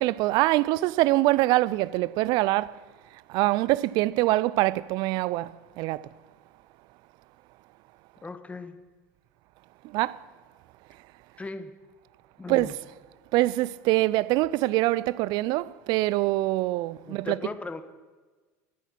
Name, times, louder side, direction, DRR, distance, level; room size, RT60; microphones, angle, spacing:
voice 1, 0.0-2.7 3.3-5.5 5.8-6.0 9.9-10.1 12.5-12.7 13.3-17.4, right 18 dB, 60° right, 0.4 m, -24 dB
voice 2, 8.2-8.8 11.4-11.7 12.4-12.8 17.1-17.8, left 3 dB, 15° left, 1.2 m, -37 dB
12.5 x 8.4 x 7.6 m
hypercardioid pair, 80°, 8 cm